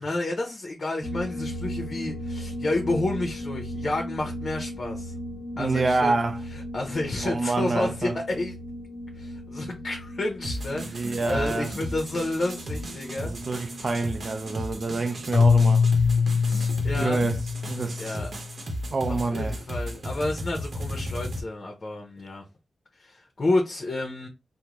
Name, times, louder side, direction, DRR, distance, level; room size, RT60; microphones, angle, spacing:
voice 1, 0.0-5.1 5.6-6.1 6.5-8.5 9.2-13.3 16.4-17.2 18.0-18.3 19.1-22.4 23.0-24.3, left 2 dB, 55° left, 0.7 m, -30 dB
sound 1, 1.0-15.8, equal, 25° right, 0.9 m, -37 dB
voice 2, 5.6-6.4 7.2-8.2 10.8-11.7 13.2-16.0 16.8-18.3 18.9-19.6, right 3 dB, 55° right, 0.5 m, -27 dB
sound 2, 10.4-21.4, equal, 70° right, 0.9 m, -35 dB
Keyboard (musical), 15.3-18.4, left 5 dB, 75° left, 0.3 m, -22 dB
3.6 x 2.1 x 2.9 m
cardioid pair, 65°, 0 cm